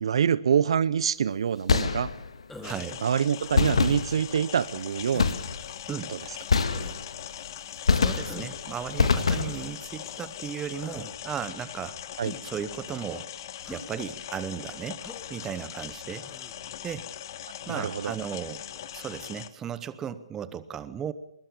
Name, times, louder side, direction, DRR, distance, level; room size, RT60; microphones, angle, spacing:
voice 1, 0.0-2.1 3.0-5.3 6.1-6.2 12.2-12.3 17.7-18.1, right 8 dB, 60° right, 19 dB, 0.7 m, -25 dB
sound 1, 1.7-2.4 3.5-4.5 5.2-5.8 6.5-7.3 7.9-8.6 9.0-9.8, left 5 dB, 75° left, 1.9 m, -25 dB
Human voice, 2.5-3.0 3.7-4.2 5.1-5.5 6.7-7.0 8.3-8.6 9.4-9.8 10.8-11.2 12.2-12.6 13.6-13.9 15.0-15.3 16.2-16.6, left 2 dB, 5° left, 1.8 m, -44 dB
sound 2, 2.6-19.5, left 11 dB, 40° left, 1.2 m, -41 dB
voice 2, 2.6-3.0 5.9-6.1 7.9-12.0 12.4-13.3 13.7-15.0 15.3-16.3 16.8-17.1 17.7-21.1, right 8 dB, 15° right, 15 dB, 0.8 m, -36 dB
21.0 x 18.5 x 7.0 m, 0.80 s
hypercardioid pair, 150°, 3 cm